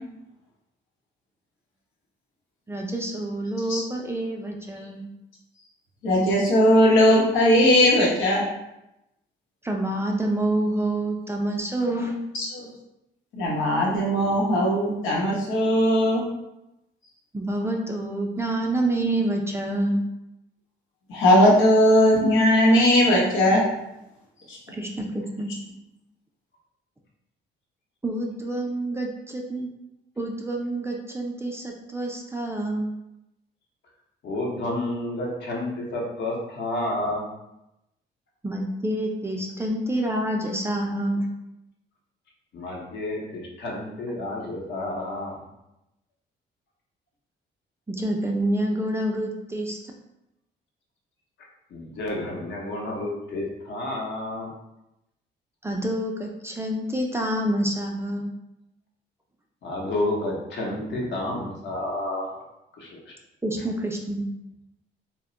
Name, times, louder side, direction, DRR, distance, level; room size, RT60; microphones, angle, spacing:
voice 1, 2.7-5.1 9.6-12.2 17.3-20.0 24.7-25.5 28.0-29.7 30.2-32.9 38.4-41.3 47.9-49.8 55.6-58.3 63.4-64.3, right 1 dB, 15° right, 1 dB, 0.4 m, -27 dB
voice 2, 6.0-8.4 12.3-12.5 13.3-16.2 21.1-23.6 24.5-24.6, equal, 90° left, -4 dB, 0.9 m, -18 dB
voice 3, 34.2-37.3 42.5-45.3 51.7-54.5 59.6-62.4 62.8-63.1, left 1 dB, 60° left, -2 dB, 0.9 m, -30 dB
2.2 x 2.1 x 3.7 m, 0.89 s
cardioid pair, 90°, 20 cm